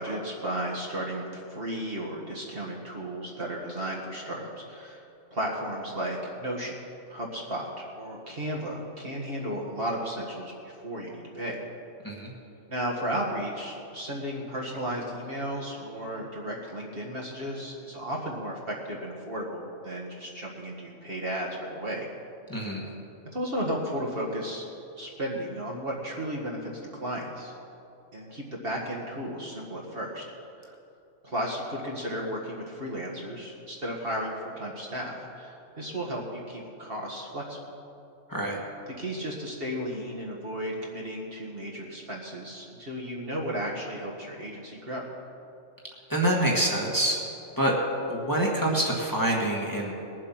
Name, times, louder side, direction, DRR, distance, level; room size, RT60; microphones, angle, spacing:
voice 1, 0.0-5.0 5.3-6.8 7.1-11.6 12.7-22.1 22.5-22.6 23.3-24.6 25.0-26.7 27.0-27.5 28.1-30.2 30.6-30.7 31.2-37.6 39.0-45.0, equal, 45° right, -3 dB, 2.0 m, -34 dB
voice 2, 22.5-22.9 38.3-38.6 46.1-47.2 47.6-47.7 48.1-49.9, right 1 dB, 15° left, -3 dB, 1.6 m, -26 dB
20.5 x 7.6 x 5.8 m, 2.7 s
omnidirectional pair, 1.3 m